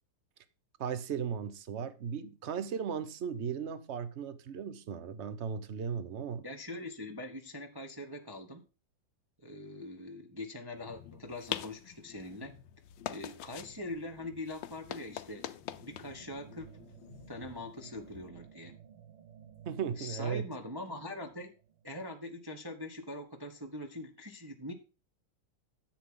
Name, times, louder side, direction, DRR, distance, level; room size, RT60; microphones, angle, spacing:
voice 1, 0.8-6.5 19.6-20.5, right 7 dB, 70° right, 0.6 m, -36 dB
voice 2, 6.4-8.6 9.4-12.6 13.1-15.5 15.8-16.7 17.3-18.7 20.0-21.5 21.8-24.7, left 1 dB, 20° right, 0.7 m, -42 dB
sound 1, 10.8-18.3, left 12 dB, 70° left, 1.3 m, -45 dB
sound 2, 15.7-22.4, right 8 dB, 85° right, 1.8 m, -56 dB
10.5 x 8.1 x 3.8 m
omnidirectional pair, 2.3 m